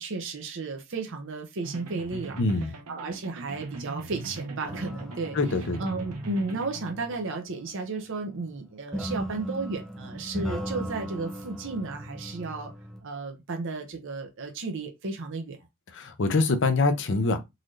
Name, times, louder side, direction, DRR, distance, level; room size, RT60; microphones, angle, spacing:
voice 1, 0.0-2.4 2.9-5.4 5.8-12.7 13.0-15.6, right 3 dB, 60° right, 0.7 m, -33 dB
sound 1, 1.6-7.2, right 2 dB, 90° right, 1.0 m, -41 dB
voice 2, 2.4-2.8 5.3-5.8 15.9-17.4, left 3 dB, 55° left, 0.7 m, -24 dB
sound 2, 4.6-7.7 8.9-13.0, equal, ahead, 0.5 m, -37 dB
3.9 x 2.6 x 3.1 m
head